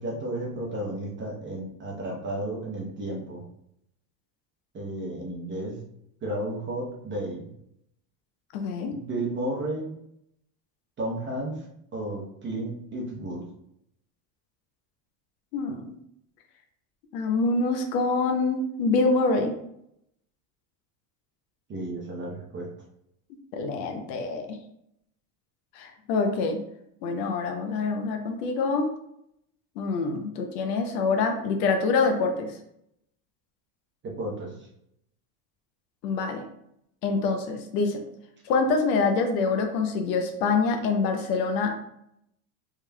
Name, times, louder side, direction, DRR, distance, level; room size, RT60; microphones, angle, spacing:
voice 1, 0.0-3.4 4.7-5.8 6.2-7.5 8.9-10.0 11.0-11.7 11.9-13.5 21.7-22.7 34.0-34.5, right 1 dB, 25° right, -2 dB, 0.7 m, -33 dB
voice 2, 8.5-8.9 15.5-16.0 17.1-19.5 23.5-24.6 25.7-26.6 27.0-28.9 29.8-32.5 36.0-36.4 37.0-38.0 38.4-41.7, left 4 dB, 85° left, 4 dB, 0.7 m, -25 dB
3.6 x 3.1 x 2.2 m, 0.76 s
cardioid pair, 145°, 48 cm